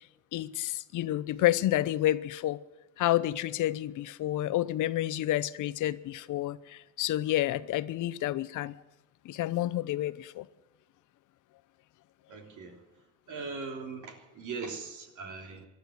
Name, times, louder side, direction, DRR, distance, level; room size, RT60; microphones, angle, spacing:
voice 1, 0.3-2.6 3.0-8.7 9.2-10.5, left 14 dB, 80° left, 0.8 m, -29 dB
voice 2, 12.3-12.8 13.3-15.7, right 4 dB, 80° right, 3.4 m, -40 dB
18.0 x 11.5 x 6.5 m
cardioid pair, 90°, 30 cm